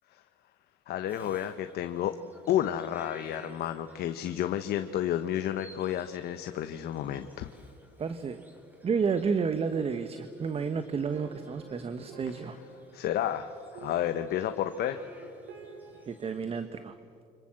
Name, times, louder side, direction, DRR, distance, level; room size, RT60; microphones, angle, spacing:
voice 1, 0.9-2.2 2.5-7.5 12.9-15.0, left 11 dB, 70° left, 9 dB, 1.1 m, -31 dB
Bird vocalization bird call bird song, 1.1-16.6, equal, 10° right, 4.6 m, -58 dB
voice 2, 8.0-8.4 8.8-12.6 16.1-17.0, right 5 dB, 35° right, 10 dB, 1.2 m, -31 dB
sound 1, 11.1-16.1, right 3 dB, 85° right, 3.6 m, -50 dB
29.5 x 26.0 x 7.7 m, 2.6 s
cardioid pair, 110°, 17 cm